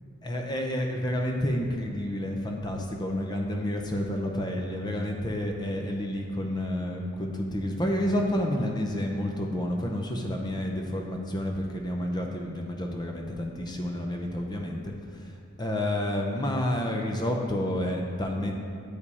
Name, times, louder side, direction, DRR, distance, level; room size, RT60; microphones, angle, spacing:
voice 1, 0.2-18.6, left 1 dB, 20° left, 1 dB, 0.6 m, -30 dB
8.3 x 5.1 x 4.2 m, 2.6 s
head